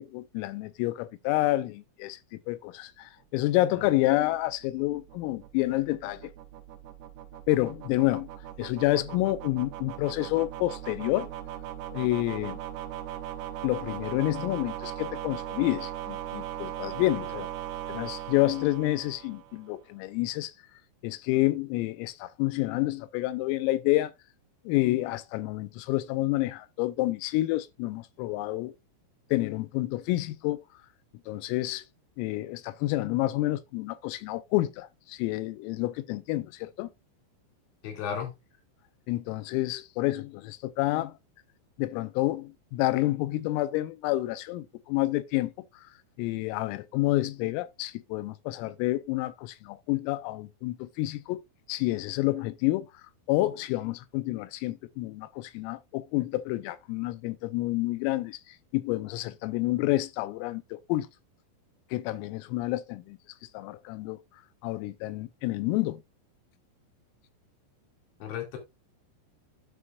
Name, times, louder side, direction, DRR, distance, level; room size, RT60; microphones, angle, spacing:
voice 1, 0.0-6.3 7.5-8.3 8.6-11.3 11.9-12.6 13.6-17.5 17.9-20.5 21.0-24.1 24.7-28.7 29.3-30.6 31.3-31.8 32.2-36.9 39.1-41.1 41.8-45.5 46.2-51.4 51.7-52.9 53.3-61.1 61.9-63.2 63.5-64.2 64.6-66.0, left 17 dB, 90° left, 3.4 m, -29 dB
sound 1, 3.5-19.7, right 12 dB, 70° right, 2.9 m, -39 dB
voice 2, 37.8-38.4 68.2-68.6, left 8 dB, 65° left, 4.7 m, -35 dB
13.0 x 4.8 x 2.4 m
omnidirectional pair, 5.9 m